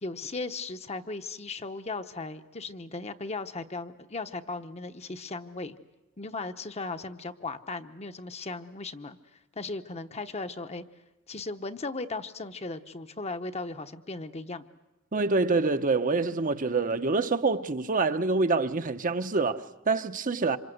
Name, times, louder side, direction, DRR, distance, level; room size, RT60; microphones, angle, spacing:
voice 1, 0.0-5.8 6.2-9.2 9.6-10.8 11.3-14.6, left 3 dB, 30° left, 1.0 m, -37 dB
voice 2, 15.1-20.6, right 3 dB, 40° right, 0.9 m, -26 dB
27.5 x 26.5 x 7.9 m
head